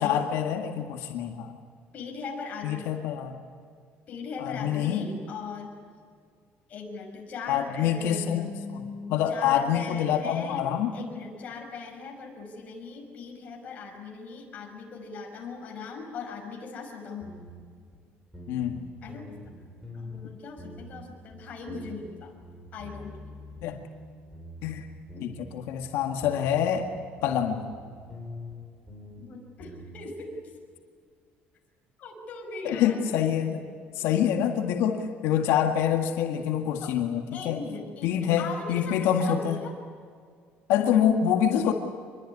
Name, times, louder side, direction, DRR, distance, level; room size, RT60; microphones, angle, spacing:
voice 1, 0.0-1.6 2.6-3.4 4.4-5.1 7.5-11.0 18.5-18.9 20.2-20.3 23.6-23.8 24.6-24.9 25.2-26.9 27.2-27.7 32.6-33.7 33.9-37.6 38.0-39.6 40.7-41.7, left 9 dB, 75° left, 4 dB, 1.9 m, -26 dB
voice 2, 1.9-2.8 4.1-5.7 6.7-10.7 10.9-17.3 19.0-19.4 19.9-22.4 22.7-23.3 25.1-25.4 29.2-30.4 32.0-33.0 33.5-33.6 33.9-34.0 36.8-37.0 37.3-39.7, left 4 dB, 35° left, 1 dB, 5.9 m, -39 dB
sound 1, 17.2-17.7 17.9-18.0 18.3-18.8 19.1-20.3 20.6-21.1 21.3-22.1 22.4-25.6 25.8-28.6 28.9-29.2 29.6-30.1, left 1 dB, ahead, 6.5 m, -44 dB
26.0 x 22.0 x 9.8 m, 2.1 s
cardioid pair, 165°, 4 cm